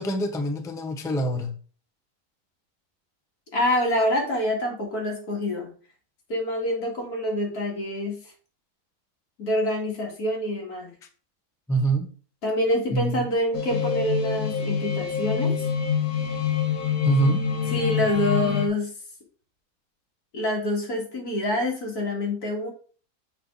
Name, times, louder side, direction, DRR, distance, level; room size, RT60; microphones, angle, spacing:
voice 1, 0.0-1.5 11.7-12.1 12.9-13.3 17.0-17.4, right 2 dB, 5° left, 0.5 m, -25 dB
voice 2, 3.5-5.7 6.3-8.2 9.4-10.9 12.4-15.7 17.7-18.9 20.3-22.7, left 1 dB, 80° left, 2.6 m, -26 dB
sound 1, 13.5-18.7, left 7 dB, 65° left, 1.4 m, -26 dB
6.6 x 5.5 x 3.8 m
omnidirectional pair, 1.6 m